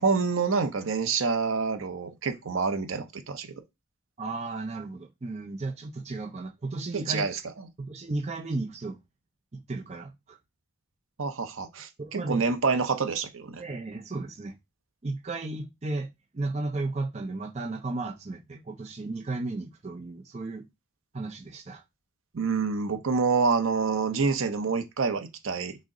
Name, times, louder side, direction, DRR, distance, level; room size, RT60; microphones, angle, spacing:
voice 1, 0.0-3.5 6.9-7.7 11.2-13.6 22.3-25.8, right 4 dB, 80° right, 0.7 m, -27 dB
voice 2, 4.2-7.2 7.8-9.0 9.5-10.4 12.0-12.4 13.6-14.5 15.0-16.1 16.3-20.7 21.1-21.8, right 2 dB, 30° right, 0.5 m, -34 dB
6.2 x 2.1 x 3.7 m
head